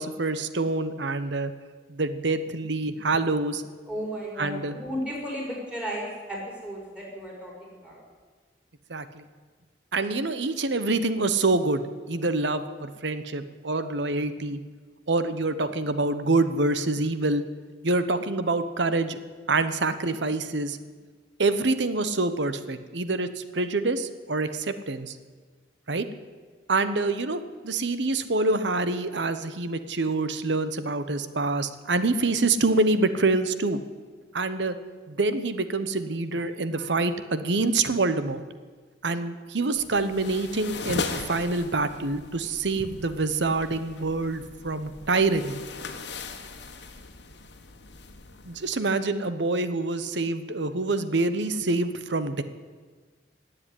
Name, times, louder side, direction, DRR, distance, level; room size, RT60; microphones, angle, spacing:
voice 1, 0.0-1.5 1.9-3.6 4.4-4.8 8.9-9.2 9.9-11.8 12.1-14.6 15.1-17.4 17.8-19.2 19.5-20.8 21.4-25.2 25.9-26.1 26.7-33.8 34.3-34.7 35.1-38.4 39.0-45.6 48.4-52.4, right 3 dB, 65° right, 11 dB, 1.0 m, -26 dB
voice 2, 3.9-8.0, equal, 5° right, -3 dB, 4.9 m, -34 dB
sound 1, 39.8-48.7, left 3 dB, 65° left, 1.5 m, -38 dB
17.5 x 7.9 x 9.9 m, 1.5 s
head